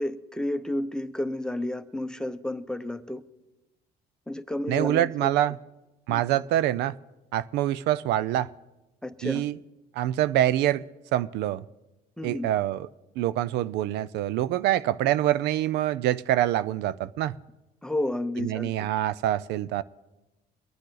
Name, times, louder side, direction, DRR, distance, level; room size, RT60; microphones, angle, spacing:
voice 1, 0.0-3.2 4.3-5.3 6.1-6.2 9.0-9.4 12.2-12.5 17.8-18.9, left 1 dB, 5° left, 0.7 m, -31 dB
voice 2, 4.7-5.6 6.1-7.0 7.3-8.5 9.2-9.5 10.0-10.8 11.1-11.6 12.2-12.9 13.2-17.3 18.4-19.8, right 13 dB, 85° right, 0.4 m, -25 dB
23.5 x 9.1 x 3.9 m
cardioid pair, 110°, 17 cm